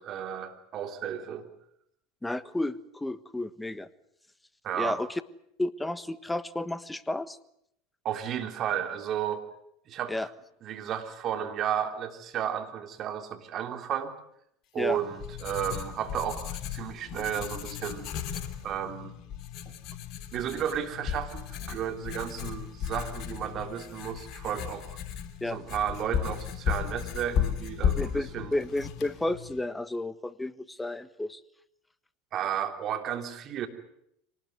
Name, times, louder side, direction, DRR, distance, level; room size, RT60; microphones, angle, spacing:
voice 1, 0.0-1.5 4.6-5.0 8.0-9.4 9.9-10.3 10.6-14.1 14.7-18.1 18.6-19.2 20.3-25.0 25.5-28.6 32.3-33.7, right 9 dB, 45° right, 7 dB, 3.5 m, -33 dB
voice 2, 2.2-3.9 4.8-5.2 5.6-7.4 10.1-10.3 14.8-15.0 25.4-25.6 28.0-31.4, left 2 dB, 10° left, 15 dB, 1.3 m, -32 dB
Writing, 14.8-29.6, left 9 dB, 55° left, 2.9 m, -35 dB
24.5 x 19.5 x 9.5 m, 0.75 s
hypercardioid pair, 90°, 0 cm